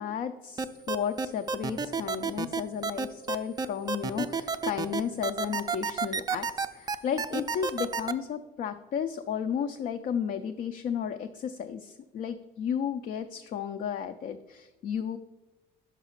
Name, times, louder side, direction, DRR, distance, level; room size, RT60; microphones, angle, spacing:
voice 1, 0.0-15.2, left 8 dB, 55° left, 8 dB, 0.4 m, -33 dB
sound 1, 0.6-8.1, right 5 dB, 25° right, 0.4 m, -30 dB
5.9 x 4.7 x 5.7 m, 1.1 s
cardioid pair, 110°, 17 cm